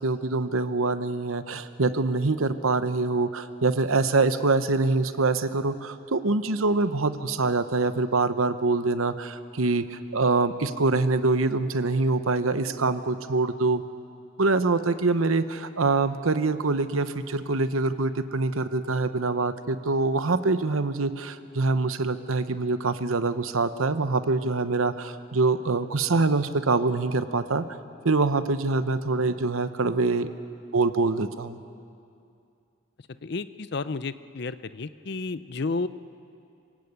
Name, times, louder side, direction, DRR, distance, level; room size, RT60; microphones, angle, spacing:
voice 1, 0.0-13.8 14.4-27.6 28.0-30.3 30.7-31.6, right 3 dB, 85° right, 11 dB, 1.0 m, -25 dB
voice 2, 33.2-35.9, left 3 dB, 55° left, 14 dB, 0.6 m, -31 dB
26.5 x 18.0 x 8.2 m, 2.5 s
head